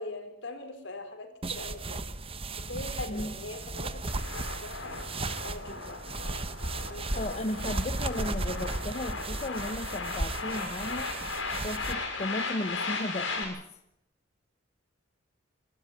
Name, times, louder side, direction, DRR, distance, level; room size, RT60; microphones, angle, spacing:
voice 1, 0.0-2.0 2.5-6.2 6.9-7.5, left 2 dB, 70° left, 6 dB, 4.5 m, -42 dB
sound 1, 1.4-11.9, right 2 dB, 30° right, 1.1 m, -35 dB
sound 2, 4.1-13.4, left 3 dB, 90° left, 6.8 m, -37 dB
voice 2, 7.1-11.1 11.6-13.8, left 1 dB, 35° left, 9 dB, 1.0 m, -35 dB
25.5 x 13.0 x 9.9 m, 0.80 s
head